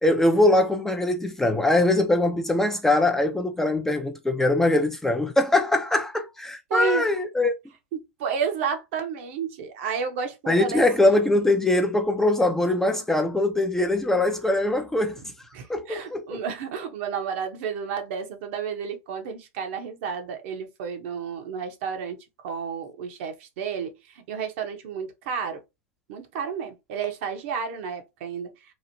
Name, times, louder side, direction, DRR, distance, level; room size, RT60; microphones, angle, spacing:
voice 1, 0.0-7.5 10.5-15.2 15.7-16.4, left 2 dB, 5° left, 0.5 m, -22 dB
voice 2, 6.7-7.0 7.9-10.8 11.1-11.2 15.5-22.2 22.4-25.6 26.1-28.5, right 6 dB, 55° right, 0.8 m, -31 dB
3.0 x 2.4 x 2.6 m
hypercardioid pair, 105°, 8 cm